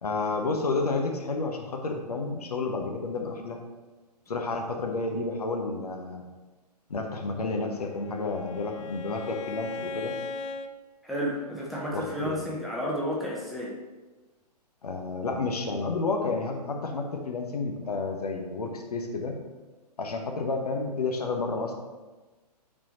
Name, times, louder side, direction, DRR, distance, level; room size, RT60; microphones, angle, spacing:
voice 1, 0.0-3.6 4.3-6.2 6.9-10.1 11.9-12.3 14.8-19.3 20.0-21.7, left 3 dB, 65° left, 2 dB, 1.0 m, -30 dB
Bowed string instrument, 7.5-10.7, left 3 dB, 50° left, 0.4 m, -38 dB
voice 2, 11.0-13.8, equal, ahead, -6 dB, 1.0 m, -31 dB
9.0 x 4.3 x 3.0 m, 1.2 s
figure-of-eight pair, 120°, 21 cm